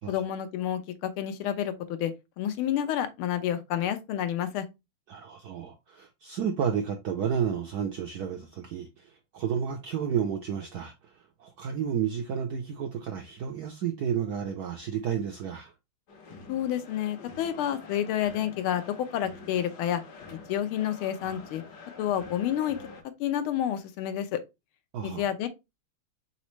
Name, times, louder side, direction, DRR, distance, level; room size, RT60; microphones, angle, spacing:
voice 1, 0.1-4.6 16.5-20.0 20.5-21.6 22.0-22.8 23.2-24.4 25.0-25.5, left 10 dB, 85° left, 1.5 m, -29 dB
voice 2, 5.1-15.7 24.9-25.2, right 7 dB, 80° right, 0.8 m, -31 dB
sound 1, 16.1-23.0, left 4 dB, 60° left, 1.3 m, -47 dB
4.2 x 3.9 x 3.1 m
omnidirectional pair, 2.3 m